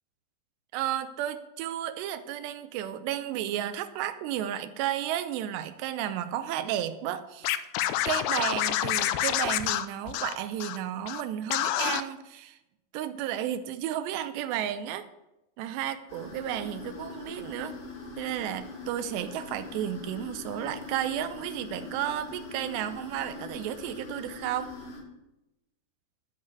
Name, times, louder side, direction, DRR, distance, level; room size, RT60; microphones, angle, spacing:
voice 1, 0.7-7.6 8.0-12.6 12.9-15.1 15.6-17.7 18.2-24.7, right 11 dB, 85° right, 10 dB, 2.8 m, -33 dB
Scratching (performance technique), 7.4-10.8 11.1-11.2 11.5-12.0, left 13 dB, 85° left, 2.3 m, -28 dB
sound 1, 16.1-25.0, left 4 dB, 65° left, 4.7 m, -42 dB
12.5 x 5.6 x 8.1 m, 0.94 s
omnidirectional pair, 5.0 m